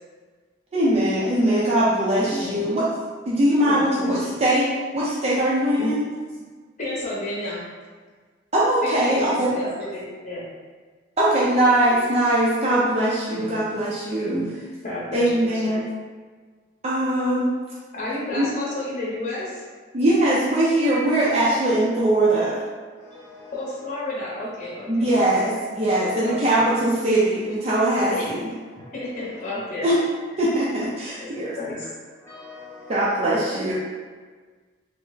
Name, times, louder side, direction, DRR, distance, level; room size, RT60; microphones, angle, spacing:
voice 1, 0.7-2.9 3.3-6.1 8.5-9.5 11.2-14.4 15.1-15.8 16.8-17.5 18.4-18.5 19.9-22.6 24.9-28.4 29.8-30.0 30.4-31.6 32.9-33.7, right 1 dB, 30° right, -8 dB, 0.4 m, -21 dB
voice 2, 2.3-2.7 3.7-4.4 5.8-5.9 6.8-7.6 8.8-10.4 13.3-13.4 14.2-14.4 14.8-15.8 17.9-19.6 23.5-25.1 26.2-26.6 28.1-28.3 29.0-29.9 31.2-31.3 31.5-31.9, left 2 dB, 40° left, -7 dB, 0.8 m, -31 dB
voice 3, 23.0-23.9 28.7-29.3 32.2-33.1, left 2 dB, 15° left, -10 dB, 1.1 m, -44 dB
3.3 x 2.1 x 3.8 m, 1.5 s
head